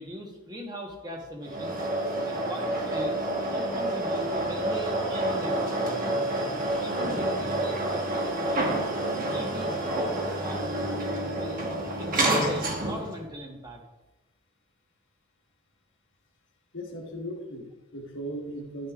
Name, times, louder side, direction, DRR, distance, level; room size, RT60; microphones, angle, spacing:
voice 1, 0.0-1.8 2.2-6.0 6.8-8.8 9.3-11.7 12.0-13.8, equal, 20° right, 1 dB, 1.0 m, -39 dB
sound 1, 1.4-13.2, right 1 dB, 40° right, 1.1 m, -28 dB
voice 2, 16.7-18.9, equal, 55° left, 1 dB, 1.3 m, -37 dB
10.0 x 6.5 x 2.4 m, 1.0 s
head